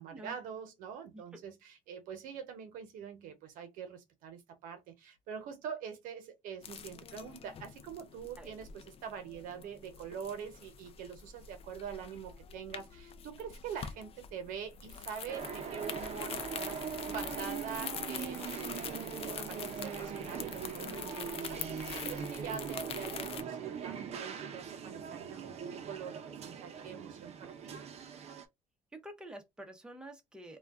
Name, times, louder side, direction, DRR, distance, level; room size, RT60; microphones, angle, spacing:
voice 1, 0.0-27.8, right 7 dB, 85° right, 0.8 m, -44 dB
sound 1, 6.6-23.4, left 7 dB, 45° left, 0.4 m, -45 dB
sound 2, 15.3-28.4, right 7 dB, 50° right, 0.6 m, -41 dB
voice 2, 28.9-30.6, right 1 dB, 5° right, 0.7 m, -48 dB
2.2 x 2.2 x 3.4 m
cardioid pair, 110°, 14 cm